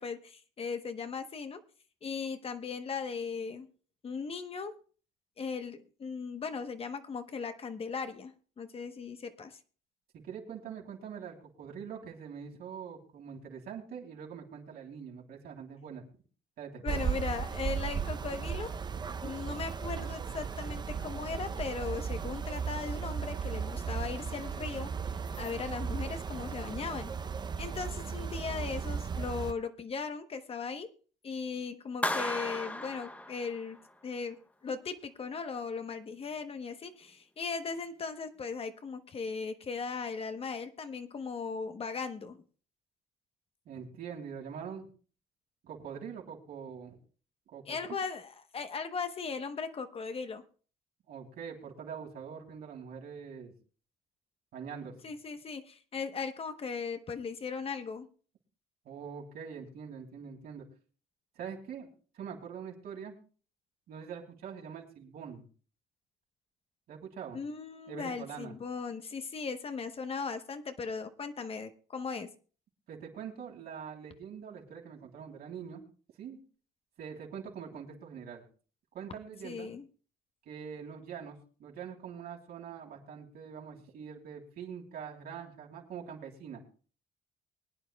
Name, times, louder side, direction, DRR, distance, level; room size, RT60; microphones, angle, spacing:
voice 1, 0.0-1.6 2.0-3.7 4.0-4.8 5.4-9.6 16.8-18.8 19.2-24.9 25.4-27.1 27.6-30.9 31.2-42.4 47.7-50.4 55.0-58.1 67.3-72.3 79.4-79.9, left 5 dB, 35° left, 9 dB, 1.0 m, -38 dB
voice 2, 10.1-16.0 16.6-17.0 43.6-44.9 45.6-47.0 47.5-48.0 51.1-53.5 54.5-55.1 58.8-60.7 61.3-61.9 62.1-63.1 63.9-65.4 66.9-67.4 67.9-68.5 72.9-75.8 76.2-76.4 77.0-78.4 78.9-79.7 80.4-86.6, right 7 dB, 65° right, 0 dB, 3.1 m, -44 dB
sound 1, 16.9-29.5, right 6 dB, 25° right, 0.6 m, -36 dB
Clapping, 32.0-33.9, left 1 dB, 10° left, 0.8 m, -35 dB
24.0 x 9.4 x 2.2 m, 0.39 s
cardioid pair, 110°, 17 cm